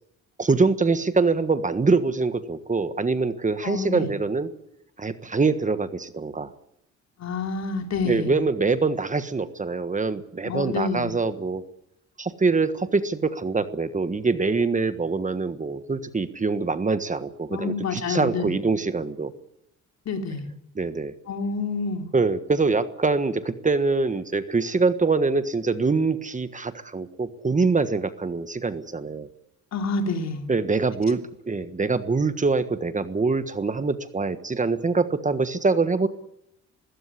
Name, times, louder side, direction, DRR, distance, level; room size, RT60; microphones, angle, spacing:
voice 1, 0.4-4.5 5.0-6.5 8.0-11.6 12.2-19.3 20.8-21.1 22.1-29.3 30.5-31.2 31.5-36.1, right 4 dB, 25° right, 11 dB, 1.4 m, -24 dB
voice 2, 3.6-4.1 7.2-8.3 10.4-11.1 17.5-18.6 20.0-20.5 21.3-22.1 29.7-30.4, left 3 dB, 60° left, 5 dB, 3.1 m, -28 dB
21.0 x 16.5 x 9.9 m, 0.81 s
cardioid pair, 90°, 30 cm